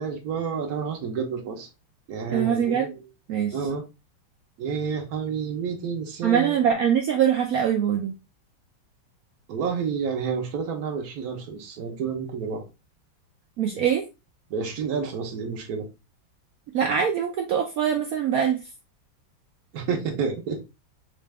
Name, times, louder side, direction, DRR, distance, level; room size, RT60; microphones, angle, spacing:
voice 1, 0.0-1.7 2.1-3.0 3.5-3.8 4.6-6.6 9.5-12.6 14.5-15.9 19.7-20.6, right 6 dB, 55° right, 1.3 m, -29 dB
voice 2, 2.3-2.9 3.3-3.6 6.2-8.1 13.6-14.1 16.7-18.6, right 8 dB, 80° right, 0.8 m, -23 dB
4.1 x 2.6 x 3.3 m
omnidirectional pair, 2.1 m